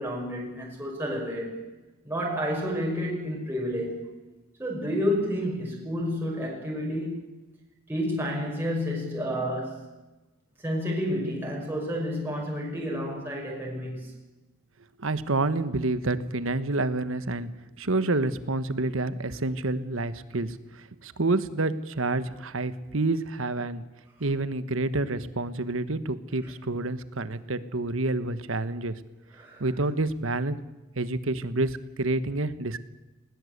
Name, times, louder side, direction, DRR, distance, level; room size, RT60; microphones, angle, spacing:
voice 1, 0.0-1.6 2.0-4.0 4.6-7.3 7.9-9.8 10.6-14.1 26.4-26.5 29.3-29.7, equal, 10° right, -2 dB, 5.7 m, -30 dB
voice 2, 15.0-17.5 17.8-20.6 21.0-23.8 24.2-28.9 29.6-30.6 31.0-32.8, right 2 dB, 75° right, 13 dB, 1.3 m, -28 dB
20.0 x 19.0 x 8.1 m, 1.1 s
head